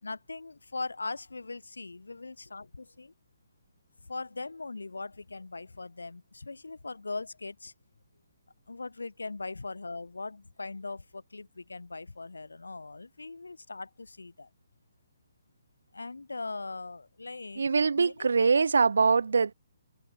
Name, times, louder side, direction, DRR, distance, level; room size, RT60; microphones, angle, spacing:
voice 1, 0.0-3.1 4.1-7.7 8.7-14.5 15.9-17.7 18.0-18.5, left 3 dB, 90° left, 3.6 m, -40 dB
voice 2, 17.6-19.5, right 5 dB, 75° right, 0.8 m, -23 dB
hypercardioid pair, 145°, 0 cm